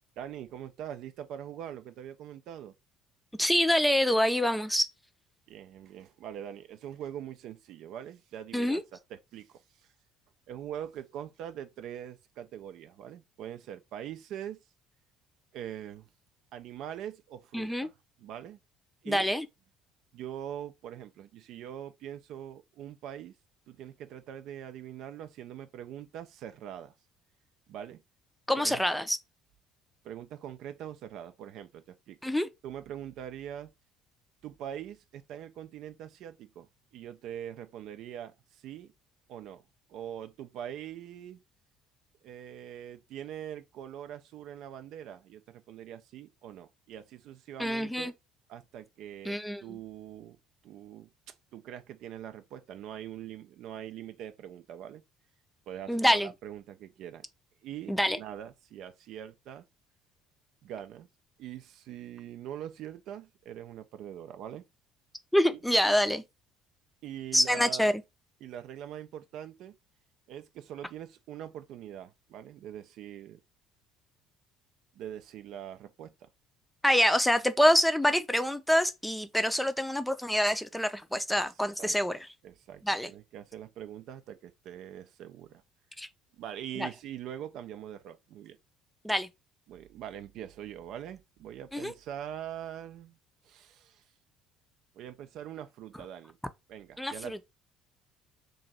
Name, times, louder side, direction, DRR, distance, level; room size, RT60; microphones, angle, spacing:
voice 1, 0.2-2.7 5.5-9.6 10.5-14.6 15.5-16.1 16.5-17.9 18.2-18.6 19.0-19.3 20.1-23.3 23.7-26.9 27.7-28.0 28.6-28.8 30.0-32.2 32.6-33.7 34.4-38.9 39.3-39.6 39.9-41.4 42.2-48.1 48.5-50.4 50.6-55.0 55.7-57.3 57.6-59.7 60.6-61.1 61.4-64.6 65.5-65.6 67.0-67.9 68.4-69.8 70.3-73.4 75.0-76.3 81.8-81.9 82.4-85.6 86.4-88.6 89.7-93.2 93.4-94.0 94.9-96.4 96.7-97.4, right 10 dB, 60° right, 0.4 m, -43 dB
voice 2, 3.4-4.9 8.5-8.8 17.5-17.9 19.1-19.5 28.5-29.2 32.2-32.5 47.6-48.1 49.2-49.8 55.9-56.3 57.9-58.2 65.3-66.2 67.3-67.9 76.8-82.2 82.8-83.1 86.0-86.1 86.8-86.9 89.0-89.3 91.7-91.9 97.0-97.4, equal, 5° left, 0.5 m, -26 dB
3.1 x 2.5 x 4.1 m
hypercardioid pair, 60°, 0 cm